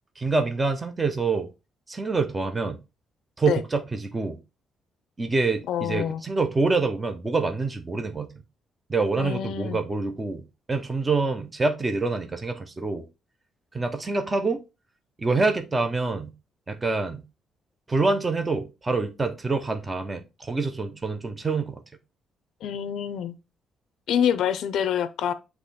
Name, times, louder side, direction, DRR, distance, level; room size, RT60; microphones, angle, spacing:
voice 1, 0.2-1.5 1.9-2.8 3.4-4.4 5.2-8.3 8.9-10.4 10.7-13.0 13.7-14.6 15.2-16.3 16.7-17.2 17.9-21.8, right 3 dB, 15° right, 0.6 m, -26 dB
voice 2, 5.7-6.2 9.1-9.8 22.6-23.4 24.1-25.3, left 9 dB, 65° left, 0.5 m, -26 dB
8.2 x 3.0 x 4.1 m
cardioid pair, 180°, 0 cm